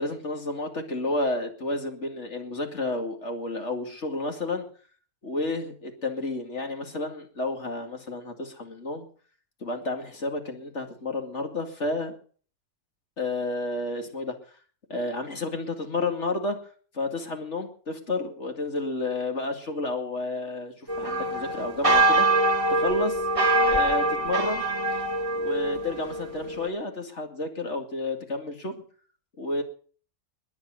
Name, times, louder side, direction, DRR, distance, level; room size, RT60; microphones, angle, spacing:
voice 1, 0.0-4.7 5.2-9.1 9.6-12.1 13.2-14.3 14.9-16.6 16.9-22.3 22.7-23.2 23.7-24.6 25.4-28.8 29.4-29.6, left 2 dB, 50° left, 4 dB, 2.7 m, -31 dB
sound 1, 20.9-26.7, right 2 dB, 25° right, 1.4 m, -24 dB
21.0 x 8.2 x 6.5 m, 0.43 s
omnidirectional pair, 1.5 m